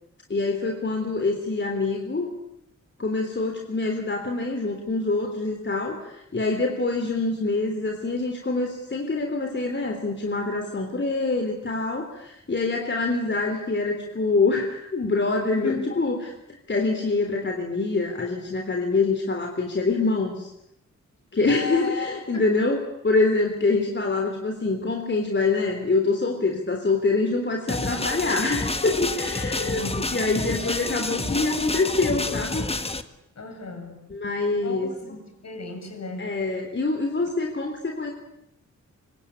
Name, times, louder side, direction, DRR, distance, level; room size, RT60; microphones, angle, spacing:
voice 1, 0.3-2.3 3.0-16.2 16.5-20.5 21.3-22.8 23.0-32.6 34.1-35.2 36.2-38.1, left 3 dB, 40° left, 3 dB, 3.6 m, -25 dB
voice 2, 15.4-16.0 21.5-21.9 22.3-22.4 29.5-30.2 33.4-34.1 34.6-36.4, left 3 dB, 60° left, 4 dB, 7.7 m, -35 dB
sound 1, 27.7-33.0, left 2 dB, 20° left, 1.7 m, -29 dB
25.5 x 24.5 x 8.8 m, 0.82 s
wide cardioid pair, 110°, 30 cm